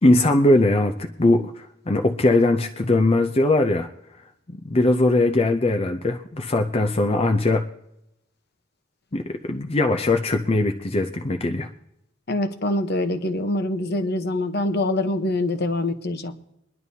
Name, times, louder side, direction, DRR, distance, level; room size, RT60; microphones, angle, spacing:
voice 1, 0.0-3.9 4.6-7.7 9.1-11.7, left 2 dB, 30° left, 5 dB, 0.6 m, -20 dB
voice 2, 12.3-16.3, left 1 dB, 55° left, 8 dB, 1.0 m, -24 dB
23.5 x 11.0 x 2.8 m, 0.83 s
head